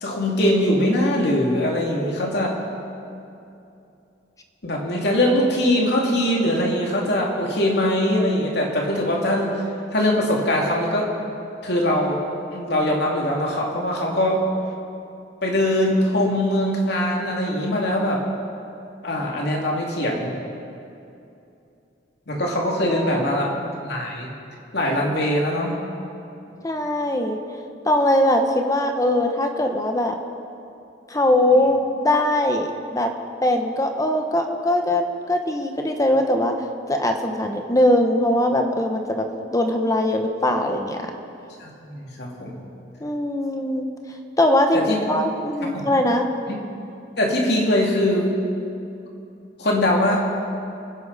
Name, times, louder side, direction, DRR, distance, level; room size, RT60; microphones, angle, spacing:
voice 1, 0.0-2.6 4.6-9.6 9.9-11.1 11.6-12.2 12.5-14.4 15.4-18.2 19.0-20.3 22.3-23.5 23.8-24.3 24.7-25.8 41.6-42.6 44.7-45.0 45.6-45.9 46.5-46.6 47.2-48.3 49.6-50.2, left 1 dB, 65° left, -1 dB, 2.6 m, -22 dB
voice 2, 22.8-23.4 26.6-27.4 27.8-30.2 31.1-33.1 33.4-41.1 43.0-43.9 44.4-46.3, left 1 dB, 20° left, 5 dB, 1.0 m, -21 dB
25.0 x 10.5 x 4.1 m, 2.7 s
head